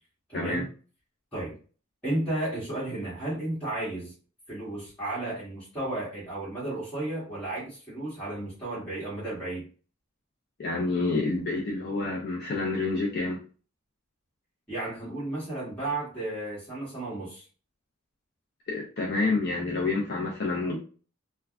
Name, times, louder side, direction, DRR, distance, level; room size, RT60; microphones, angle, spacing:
voice 1, 0.3-0.7 1.3-1.6 2.0-4.1 4.5-9.7 14.7-17.4, right 2 dB, 5° left, -10 dB, 1.3 m, -33 dB
voice 2, 10.6-13.4 18.7-20.8, left 3 dB, 55° left, -2 dB, 0.6 m, -28 dB
3.3 x 2.3 x 2.4 m, 0.38 s
head